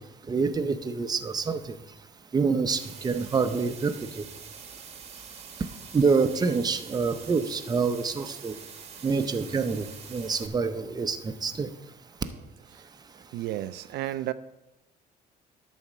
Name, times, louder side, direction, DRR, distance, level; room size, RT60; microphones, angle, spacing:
voice 1, 0.3-1.7 2.3-4.2 5.9-8.5 9.0-11.7, right 4 dB, 25° right, 8 dB, 0.7 m, -26 dB
sound 1, 2.7-10.5, right 6 dB, 40° right, 1.0 m, -45 dB
voice 2, 13.1-14.3, right 14 dB, 80° right, 13 dB, 0.4 m, -33 dB
11.5 x 4.3 x 7.2 m, 0.99 s
cardioid pair, 110°, 17 cm